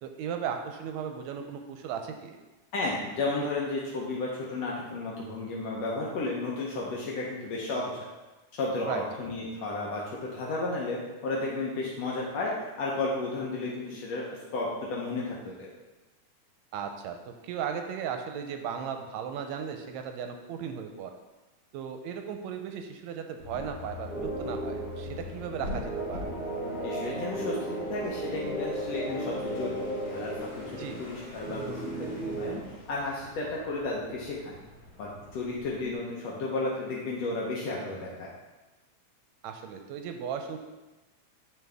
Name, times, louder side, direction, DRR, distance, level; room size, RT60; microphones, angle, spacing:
voice 1, 0.0-2.4 8.8-9.1 16.7-17.2 17.4-21.1 21.7-26.3 30.8-31.0 39.4-40.6, right 7 dB, 80° right, 5 dB, 1.7 m, -36 dB
voice 2, 2.7-7.9 8.6-15.7 26.8-29.8 30.1-30.3 31.0-32.6 32.9-34.5 35.0-38.3, left 2 dB, 70° left, -4 dB, 1.9 m, -33 dB
sound 1, 23.4-35.9, left 3 dB, 50° left, 3.4 m, -45 dB
sound 2, 24.1-32.6, right 1 dB, ahead, 0.9 m, -35 dB
10.0 x 3.9 x 3.5 m, 1.1 s
omnidirectional pair, 3.4 m